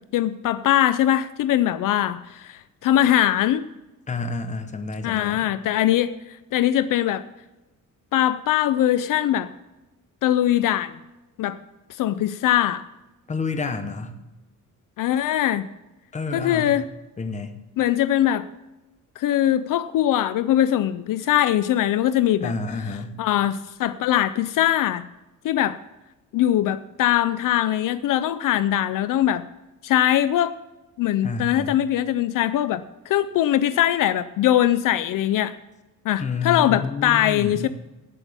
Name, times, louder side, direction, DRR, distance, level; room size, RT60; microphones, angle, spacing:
voice 1, 0.1-3.7 5.0-7.2 8.1-9.5 10.2-10.9 11.4-11.6 12.0-12.8 15.0-15.6 16.3-16.9 17.8-18.5 19.2-22.5 23.2-25.0 25.4-25.8 26.3-29.4 29.8-30.5 31.0-35.5 36.1-37.7, left 12 dB, 70° left, 13 dB, 0.5 m, -21 dB
voice 2, 4.1-5.4 13.3-14.1 16.1-16.8 17.2-17.6 22.4-23.2 31.2-31.8 36.2-37.7, left 4 dB, 20° left, 7 dB, 1.0 m, -29 dB
18.0 x 8.1 x 3.5 m, 1.0 s
cardioid pair, 175°, 34 cm